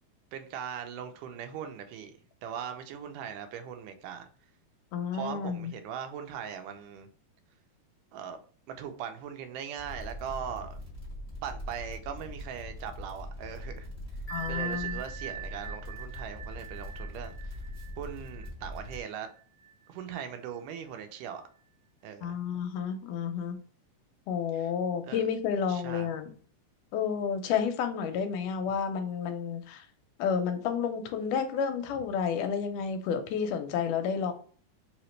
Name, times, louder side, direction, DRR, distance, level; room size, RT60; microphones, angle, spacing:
voice 1, 0.3-2.1 2.4-4.3 5.1-7.1 8.1-8.4 8.7-10.8 11.4-13.9 14.5-17.6 18.0-19.3 19.9-21.4 22.0-22.4 24.5-24.7 25.0-25.2 25.7-26.1, right 8 dB, 85° right, 2.1 m, -40 dB
voice 2, 4.9-5.7 14.3-15.0 22.2-23.6 24.3-26.3 26.9-29.9 30.2-34.3, left 7 dB, 80° left, 2.1 m, -31 dB
sound 1, 9.8-19.0, left 1 dB, 5° right, 1.0 m, -42 dB
Bell, 14.3-19.7, right 9 dB, 65° left, 0.9 m, -41 dB
4.9 x 2.9 x 3.1 m
omnidirectional pair, 3.8 m